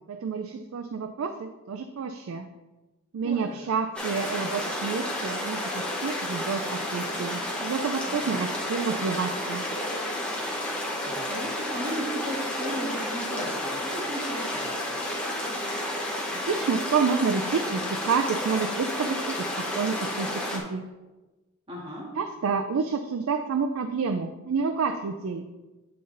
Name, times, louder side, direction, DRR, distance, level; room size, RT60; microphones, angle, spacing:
voice 1, 0.1-2.5 3.1-9.6 16.3-20.8 22.2-25.5, right 5 dB, 80° right, 7 dB, 0.4 m, -29 dB
sound 1, 3.9-20.6, left 1 dB, 5° left, 0.8 m, -31 dB
voice 2, 8.0-8.4 11.0-14.8 21.7-22.1, equal, 25° right, -6 dB, 1.7 m, -35 dB
8.5 x 3.9 x 3.8 m, 1.1 s
head